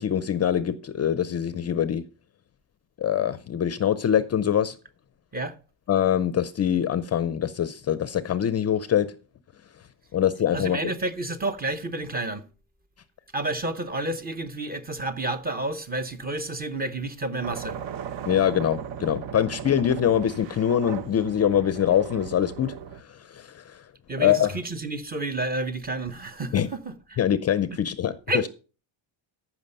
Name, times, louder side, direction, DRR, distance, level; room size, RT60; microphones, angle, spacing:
voice 1, 0.0-2.0 3.0-4.7 5.9-9.1 10.1-10.9 18.3-23.6 24.2-24.5 26.5-26.7 27.2-28.1, left 9 dB, 35° left, 0.5 m, -24 dB
voice 2, 10.5-12.4 13.3-17.8 24.1-27.2 28.3-28.5, right 2 dB, 20° right, 0.8 m, -30 dB
sound 1, 17.4-23.0, right 8 dB, 60° right, 1.0 m, -37 dB
14.5 x 5.9 x 5.4 m
cardioid pair, 165°, 48 cm